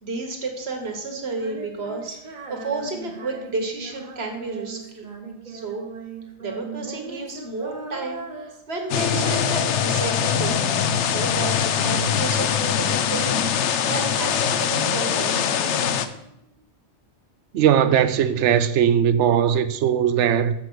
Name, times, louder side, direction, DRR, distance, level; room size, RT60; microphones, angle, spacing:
voice 1, 0.0-5.1 5.5-5.9 6.4-10.7 11.0-15.9, right 3 dB, 60° right, 1.6 m, -32 dB
Female singing, 1.3-11.6 11.9-13.5 13.8-16.5, right 3 dB, 45° right, 1.0 m, -39 dB
sound 1, 8.9-16.1, left 8 dB, 80° left, 0.9 m, -22 dB
voice 2, 17.5-20.5, right 9 dB, 85° right, 0.9 m, -19 dB
7.3 x 4.7 x 6.2 m
omnidirectional pair, 1.2 m